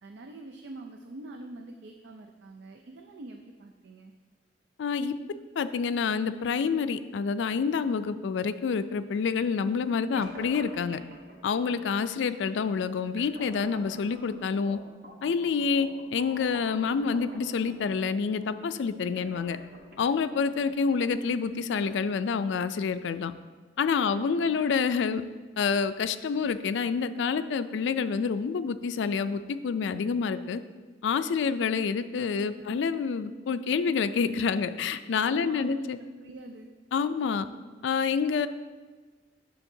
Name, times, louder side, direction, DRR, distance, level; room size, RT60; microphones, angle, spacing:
voice 1, 0.0-4.1 24.1-24.6 32.7-32.8 35.3-35.9 36.2-36.7, right 2 dB, 70° right, 4 dB, 0.4 m, -44 dB
voice 2, 4.8-5.1 5.6-11.0 11.4-14.8 15.2-19.6 20.0-23.3 23.8-25.2 25.6-30.6 31.0-36.0 36.9-37.5 37.8-38.5, left 5 dB, 80° left, 12 dB, 0.3 m, -28 dB
sound 1, 10.2-22.2, equal, 55° right, 1.1 m, -49 dB
9.9 x 6.3 x 2.7 m, 1.4 s
head